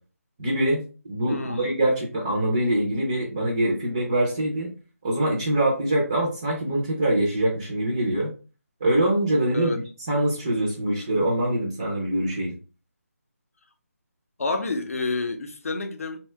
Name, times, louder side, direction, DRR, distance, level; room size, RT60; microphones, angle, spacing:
voice 1, 0.4-4.7 5.0-8.3 8.8-9.8 10.1-12.5, right 1 dB, 15° right, 0.4 m, -24 dB
voice 2, 1.3-1.7 9.5-9.8 14.4-16.2, left 3 dB, 65° left, 0.6 m, -29 dB
2.7 x 2.1 x 3.2 m
figure-of-eight pair, 170°, 8 cm